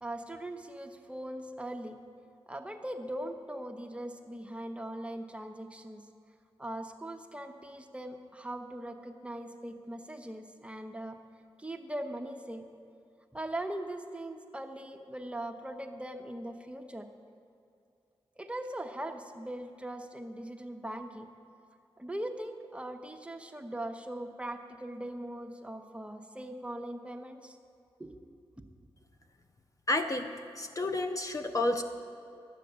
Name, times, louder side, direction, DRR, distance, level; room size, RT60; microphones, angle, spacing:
voice 1, 0.0-2.0 2.5-6.0 6.6-11.2 11.6-12.7 13.3-17.1 18.4-21.3 22.0-27.6 28.0-28.2, right 1 dB, 10° right, 5 dB, 0.9 m, -40 dB
voice 2, 29.9-31.8, left 2 dB, 30° left, 6 dB, 0.6 m, -31 dB
11.0 x 7.5 x 6.8 m, 2.6 s
cardioid pair, 60°, 10 cm